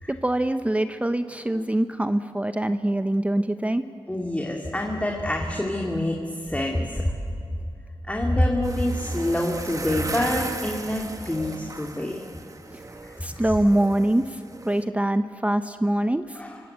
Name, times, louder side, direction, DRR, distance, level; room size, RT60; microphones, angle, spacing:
voice 1, 0.1-3.8 12.7-12.8 13.2-14.4 14.7-16.4, right 1 dB, 15° right, 9 dB, 0.8 m, -24 dB
voice 2, 4.1-7.1 8.1-12.2 13.0-13.5 16.3-16.6, left 1 dB, 15° left, 0 dB, 2.8 m, -26 dB
sound 1, 8.6-14.9, right 2 dB, 35° right, 1.7 m, -36 dB
26.5 x 25.0 x 8.2 m, 2.3 s
wide cardioid pair, 75°, 10 cm